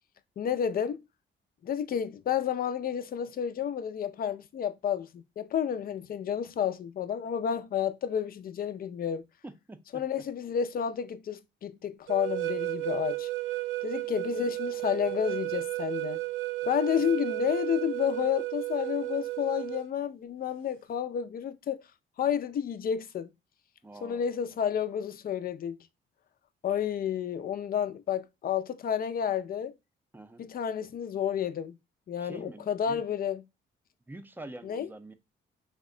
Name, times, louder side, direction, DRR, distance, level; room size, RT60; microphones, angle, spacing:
voice 1, 0.4-1.0 1.6-9.2 9.9-13.3 13.8-16.2 16.6-21.8 22.2-23.3 24.0-25.8 26.6-29.7 30.4-31.7 32.1-33.4 34.6-34.9, left 8 dB, 50° left, 0.5 m, -31 dB
voice 2, 9.4-9.8 14.2-14.6 23.8-24.3 30.1-30.5 32.2-33.0 34.1-35.1, right 2 dB, 10° right, 0.5 m, -46 dB
sound 1, 12.1-19.9, right 18 dB, 85° right, 0.4 m, -33 dB
3.4 x 2.1 x 3.6 m
cardioid pair, 90°, 20 cm